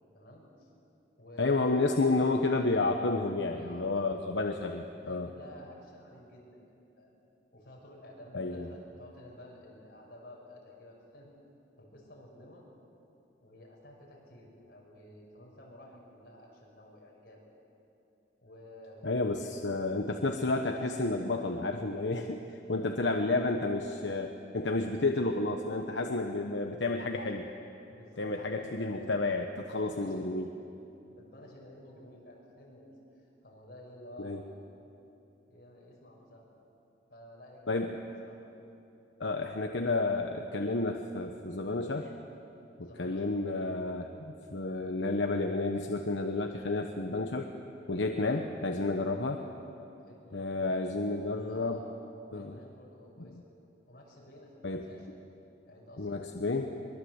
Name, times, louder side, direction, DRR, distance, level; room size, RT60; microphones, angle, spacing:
voice 1, 0.1-0.7 1.2-1.7 3.4-4.3 5.0-6.6 7.0-7.1 7.5-11.3 11.8-12.7 13.4-17.4 18.4-19.1 19.4-19.6 19.9-20.2 23.1-23.6 24.8-24.9 26.7-26.8 27.9-29.4 29.7-30.4 31.1-34.6 35.5-36.5 37.1-38.4 42.8-43.5 48.2-48.5 50.0-50.8 51.5-51.9 52.3-53.4 53.9-55.1 55.7-56.3, left 1 dB, 55° left, -2 dB, 6.5 m, -52 dB
voice 2, 1.4-5.3 8.3-8.7 19.0-22.4 22.7-27.5 28.2-30.5 34.2-34.4 37.7-38.0 39.2-42.1 42.8-47.5 47.9-49.4 50.3-51.8 52.3-52.6 53.2-53.4 54.6-54.9 56.0-56.7, left 2 dB, 80° left, 4 dB, 1.1 m, -31 dB
23.0 x 22.0 x 8.1 m, 2.9 s
head